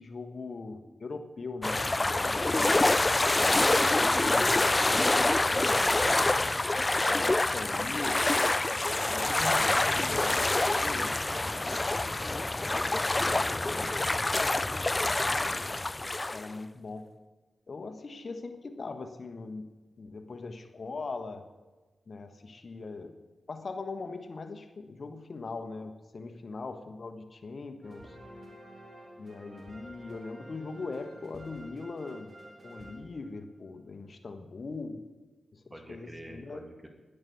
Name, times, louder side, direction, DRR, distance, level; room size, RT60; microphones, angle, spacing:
voice 1, 0.0-1.8 2.5-5.0 5.4-5.9 6.9-8.2 8.6-11.1 13.3-14.1 15.0-15.8 16.3-17.1 17.7-19.7 20.0-21.5 22.1-23.2 23.5-28.2 29.2-32.3 32.6-35.0 35.5-36.6, left 3 dB, 60° left, 7 dB, 1.4 m, -41 dB
sound 1, 1.6-16.5, left 2 dB, 30° left, 0.4 m, -26 dB
voice 2, 1.9-2.3 10.9-11.7 13.2-13.9 35.7-36.9, right 1 dB, 25° right, 4 dB, 2.5 m, -47 dB
sound 2, 27.8-33.7, right 1 dB, 50° right, 3.5 m, -50 dB
12.0 x 10.0 x 7.1 m, 1.2 s
cardioid pair, 45°, 0 cm